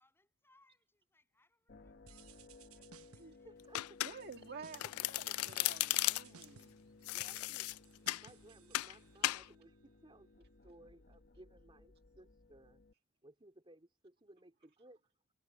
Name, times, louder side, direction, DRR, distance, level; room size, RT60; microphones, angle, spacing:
voice 1, 0.0-3.8, left 2 dB, 10° left, 7.3 m, -74 dB
sound 1, 1.7-12.9, left 3 dB, 50° left, 1.1 m, -60 dB
sound 2, 2.1-3.4 3.8-4.3 4.6-5.1 5.5-9.5, right 7 dB, 75° right, 1.0 m, -61 dB
voice 2, 3.4-3.8 4.2-4.3 6.8-7.7 8.2-12.8 13.2-15.0, right 1 dB, 25° right, 3.2 m, -61 dB
Domestic sounds home sounds, 3.7-4.4 4.7-6.5 7.1-8.3 8.7-8.9 9.2-9.5, left 17 dB, 75° left, 0.3 m, -36 dB
voice 3, 4.0-6.7, right 5 dB, 50° right, 1.8 m, -51 dB
head